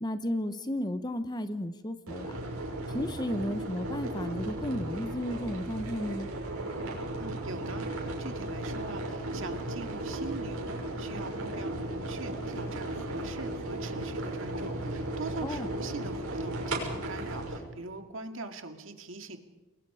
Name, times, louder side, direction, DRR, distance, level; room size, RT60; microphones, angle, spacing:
voice 1, 0.0-2.4 2.9-6.3 15.4-15.7, left 1 dB, 20° left, 10 dB, 1.1 m, -33 dB
sound 1, 2.1-17.6, right 1 dB, 85° right, 6.2 m, -35 dB
voice 2, 7.2-19.4, right 2 dB, 60° right, 6 dB, 2.2 m, -42 dB
28.5 x 21.5 x 5.1 m, 1.1 s
head